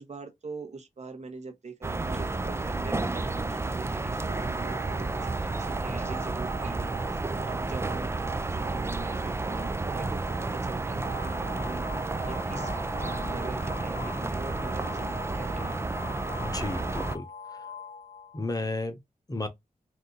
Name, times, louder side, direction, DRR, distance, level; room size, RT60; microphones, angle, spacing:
voice 1, 0.0-12.8 13.0-15.9, right 4 dB, 50° right, 0.9 m, -43 dB
sound 1, 1.8-17.2, right 2 dB, 15° right, 0.4 m, -31 dB
sound 2, 4.3-14.4, right 10 dB, 85° right, 0.7 m, -45 dB
sound 3, 11.1-18.6, left 5 dB, 65° left, 0.7 m, -43 dB
voice 2, 16.4-17.2 18.3-19.0 19.3-19.5, left 2 dB, 25° left, 0.9 m, -32 dB
2.7 x 2.6 x 3.7 m
cardioid pair, 60°, 15 cm